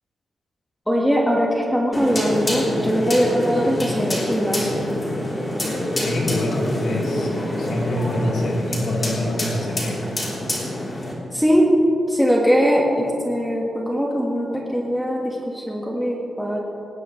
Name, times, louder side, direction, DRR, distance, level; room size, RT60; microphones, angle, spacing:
voice 1, 0.9-4.9 11.3-11.7 12.1-16.6, equal, ahead, -2 dB, 1.7 m, -21 dB
sound 1, 1.9-11.1, left 1 dB, 25° left, 3.7 m, -26 dB
voice 2, 6.0-7.3 7.6-10.0, left 1 dB, 80° left, -3 dB, 3.7 m, -25 dB
19.5 x 19.0 x 3.3 m, 2.8 s
wide cardioid pair, 135°, 0 cm